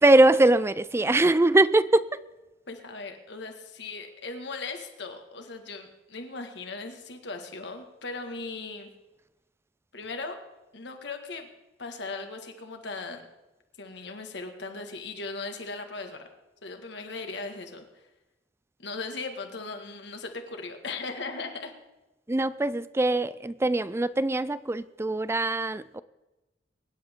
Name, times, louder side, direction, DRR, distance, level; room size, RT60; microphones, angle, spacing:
voice 1, 0.0-2.2 22.3-26.0, right 2 dB, 15° right, 16 dB, 0.4 m, -22 dB
voice 2, 2.7-8.9 9.9-10.4 10.7-11.5 11.8-13.2 13.8-16.3 16.6-18.0 18.8-21.7, left 3 dB, 65° left, 5 dB, 1.8 m, -38 dB
23.5 x 10.5 x 3.7 m, 1.0 s
head